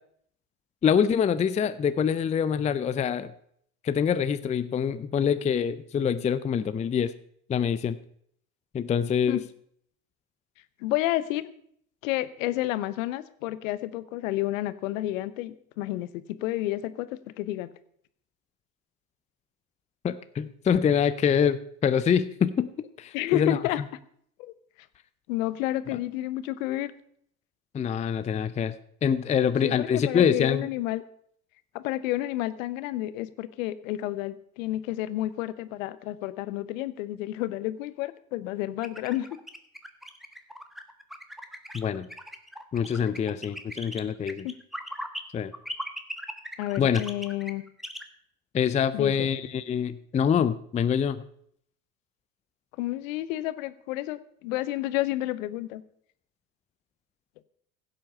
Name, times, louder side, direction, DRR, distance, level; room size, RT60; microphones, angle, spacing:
voice 1, 0.8-3.3 3.8-7.1 7.5-8.0 8.7-9.4 20.0-23.6 25.9-26.0 27.7-28.7 29.0-30.7 41.7-42.1 42.7-44.5 45.3-45.5 46.8-47.0 48.5-51.2, left 7 dB, 15° left, 13 dB, 0.5 m, -25 dB
voice 2, 10.8-11.5 12.0-17.1 17.4-17.7 23.1-23.8 24.4-24.5 25.3-26.9 29.4-31.0 31.7-39.3 44.4-44.5 46.6-47.6 48.9-49.3 52.8-55.8, left 15 dB, 60° left, 15 dB, 1.0 m, -30 dB
sound 1, 38.8-45.2 45.5-48.0, equal, ahead, 1.2 m, -39 dB
16.0 x 7.9 x 5.5 m, 0.66 s
hypercardioid pair, 80°, 45 cm